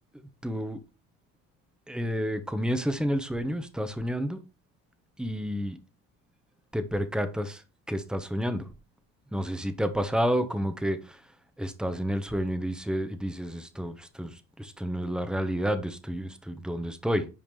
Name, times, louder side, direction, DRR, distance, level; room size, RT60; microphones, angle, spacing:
voice 1, 0.4-0.8 1.9-4.4 5.2-5.8 6.7-7.6 7.9-8.7 9.3-11.2 11.6-17.3, equal, ahead, 1.1 m, -30 dB
9.1 x 5.0 x 3.2 m
hypercardioid pair, 65°, 44 cm